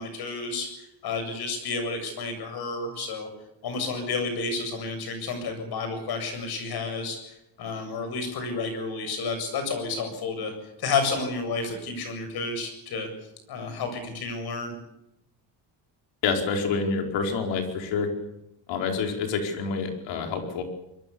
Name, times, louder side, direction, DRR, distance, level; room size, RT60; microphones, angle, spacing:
voice 1, 0.0-3.3 3.6-10.5 10.8-13.1 13.5-14.7, left 4 dB, 60° left, 6 dB, 7.7 m, -31 dB
voice 2, 16.2-18.1 18.7-20.6, left 5 dB, 85° left, 3 dB, 4.9 m, -27 dB
24.5 x 21.5 x 7.1 m, 0.85 s
cardioid pair, 175°, 43 cm